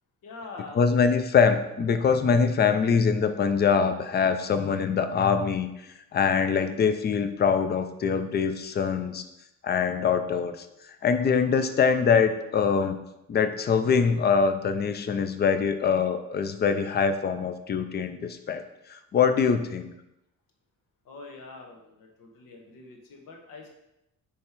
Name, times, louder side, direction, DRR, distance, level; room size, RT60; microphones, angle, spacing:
voice 1, 0.2-0.8 21.0-23.7, left 3 dB, 85° left, 1 dB, 1.3 m, -44 dB
voice 2, 0.8-5.7 6.1-9.2 9.6-10.7 11.0-13.0 13.3-18.6 18.9-19.9, left 6 dB, 30° left, 9 dB, 0.4 m, -23 dB
7.0 x 3.3 x 4.5 m, 0.88 s
cardioid pair, 160°, 32 cm